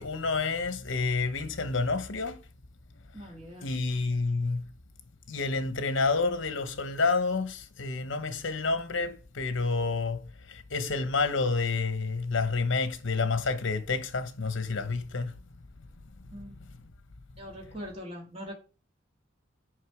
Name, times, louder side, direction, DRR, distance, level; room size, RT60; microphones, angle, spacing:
voice 1, 0.0-2.4 3.6-4.7 5.3-10.2 10.5-15.3, left 4 dB, 70° left, 0.9 m, -29 dB
voice 2, 3.1-3.7 16.3-16.6 17.4-18.5, equal, 30° right, 1.9 m, -42 dB
6.4 x 4.9 x 4.8 m
head